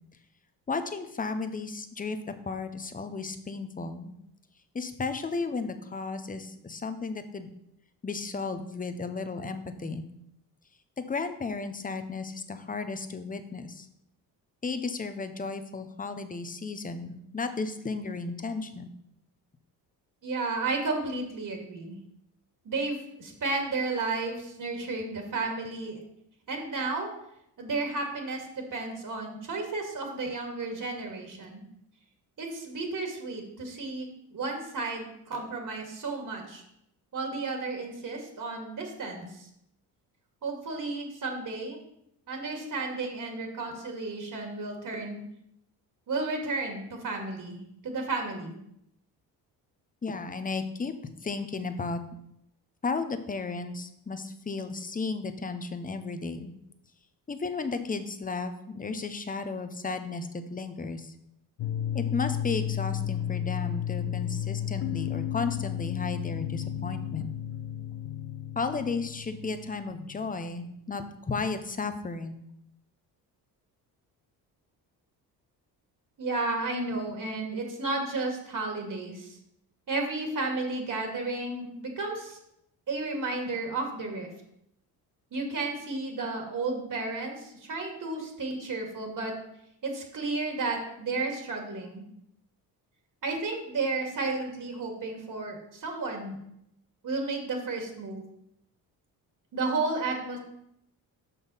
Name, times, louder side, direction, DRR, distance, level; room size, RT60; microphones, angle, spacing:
voice 1, 0.7-2.2 2.5-4.1 4.7-7.5 8.0-10.0 11.0-13.9 14.6-18.9 50.0-50.9 51.2-52.0 52.8-56.5 57.3-61.1 61.9-67.3 68.6-72.4, left 4 dB, 20° left, 9 dB, 0.9 m, -34 dB
voice 2, 20.2-22.0 22.6-26.0 26.5-27.1 27.6-31.7 32.4-36.6 37.1-39.5 40.4-41.8 42.3-45.2 46.1-48.6 76.2-79.4 79.9-82.4 82.9-84.3 85.3-89.3 89.8-92.0 93.2-96.4 97.0-98.2 99.5-100.4, right 3 dB, 50° right, 2 dB, 2.3 m, -33 dB
sound 1, 61.6-70.4, left 10 dB, 65° left, 0.8 m, -33 dB
6.2 x 5.5 x 5.6 m, 0.77 s
cardioid pair, 90°, 40 cm